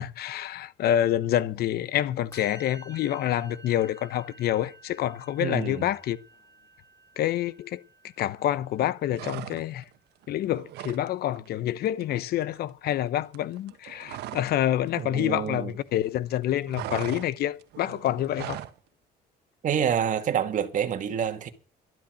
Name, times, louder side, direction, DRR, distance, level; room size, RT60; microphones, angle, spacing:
voice 1, 0.0-6.2 7.2-7.8 8.2-9.8 10.3-18.6, left 12 dB, 70° left, 1.0 m, -27 dB
Musical instrument, 2.3-9.6, right 2 dB, 15° left, 6.4 m, -52 dB
voice 2, 5.4-5.9 15.0-15.7 19.6-21.5, right 8 dB, 50° right, 2.1 m, -27 dB
sound 1, 9.1-9.9 10.2-11.1 11.3-11.6 11.9-14.6 14.9-16.0 16.2-18.8, right 13 dB, 80° right, 1.4 m, -39 dB
12.5 x 11.5 x 6.4 m
cardioid pair, 110°, 17 cm